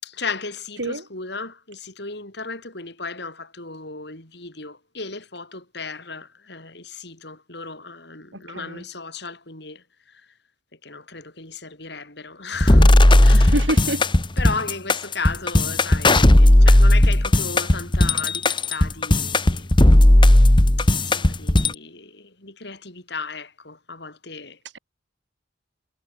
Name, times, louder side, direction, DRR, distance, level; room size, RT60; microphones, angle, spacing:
voice 1, 0.0-10.3 10.8-13.7 14.4-19.8 20.8-24.6, left 4 dB, 60° left, 7.1 m, -35 dB
sound 1, 12.6-21.7, left 1 dB, 25° left, 1.2 m, -15 dB
voice 2, 13.3-14.1, right 1 dB, 75° right, 4.9 m, -26 dB
head